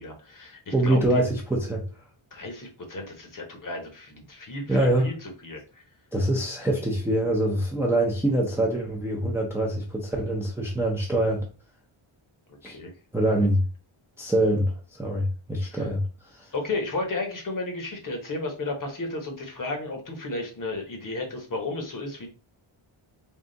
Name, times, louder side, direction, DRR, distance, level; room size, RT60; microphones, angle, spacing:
voice 1, 0.0-1.2 2.3-5.8 12.6-12.9 13.4-13.5 15.7-15.8 16.5-22.3, left 2 dB, 40° left, 1.0 m, -33 dB
voice 2, 0.7-1.8 4.7-5.1 6.1-11.5 12.6-12.8 13.1-13.6 14.2-16.0 16.3-16.5, right 1 dB, 5° right, 0.5 m, -24 dB
3.7 x 2.4 x 3.8 m
wide cardioid pair, 170°, 50 cm